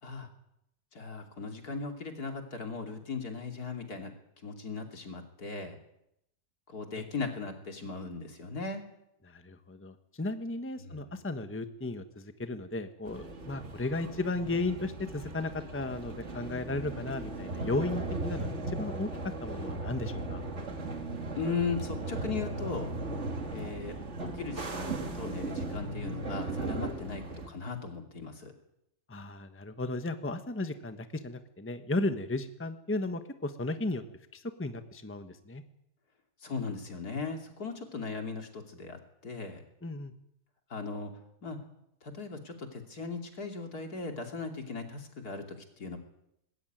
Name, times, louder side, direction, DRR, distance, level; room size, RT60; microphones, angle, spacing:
voice 1, 0.9-4.1 4.4-5.8 6.7-8.8 10.8-11.1 21.4-22.9 23.5-24.0 24.3-28.5 36.4-39.6 40.7-41.1 41.4-41.6 42.0-45.4 45.8-46.0, left 4 dB, 75° left, 4 dB, 3.3 m, -38 dB
voice 2, 9.3-19.1 19.4-20.4 29.1-34.0 34.3-35.6 39.8-40.1, left 2 dB, 10° left, 8 dB, 1.2 m, -35 dB
sound 1, 13.1-27.5, right 2 dB, 50° right, 2.4 m, -37 dB
20.0 x 17.0 x 9.2 m, 0.80 s
omnidirectional pair, 1.7 m